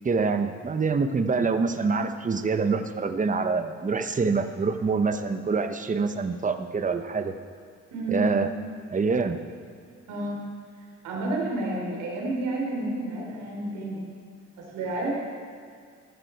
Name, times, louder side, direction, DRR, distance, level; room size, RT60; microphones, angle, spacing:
voice 1, 0.0-7.3 8.1-8.5 8.9-9.4, right 4 dB, 25° right, 8 dB, 1.0 m, -25 dB
voice 2, 7.9-8.3 10.1-10.4 11.0-14.0 14.6-15.1, right 2 dB, 90° right, -2 dB, 3.9 m, -30 dB
15.0 x 12.5 x 4.6 m, 2.1 s
cardioid pair, 90°, 30 cm